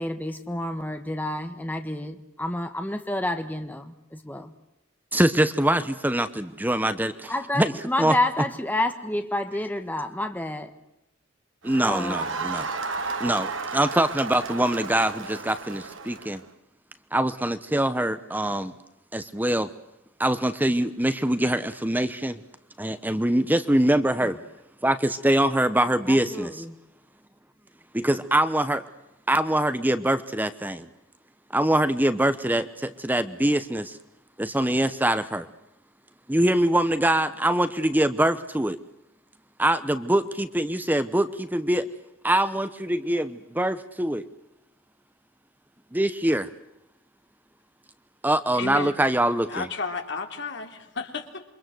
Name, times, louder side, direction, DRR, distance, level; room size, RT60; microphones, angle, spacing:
voice 1, 0.0-4.5 7.3-10.7 11.8-12.4 26.1-26.7, left 1 dB, 10° left, 7 dB, 1.4 m, -29 dB
voice 2, 5.1-7.3 7.6-7.7 8.0-8.1 11.6-12.7 13.2-16.4 17.1-18.7 19.1-19.7 20.2-22.4 22.8-24.4 24.8-26.5 27.9-28.8 29.3-30.9 31.5-34.0 34.4-35.5 36.3-38.8 39.6-41.9 42.2-44.2 45.9-46.5 48.2-49.7, right 1 dB, 10° right, 11 dB, 0.9 m, -23 dB
Crowd, 11.6-16.4, right 4 dB, 70° right, 1.8 m, -33 dB
voice 3, 48.5-48.9 49.5-51.4, left 4 dB, 60° left, 5 dB, 3.3 m, -33 dB
28.0 x 24.5 x 7.8 m, 0.88 s
head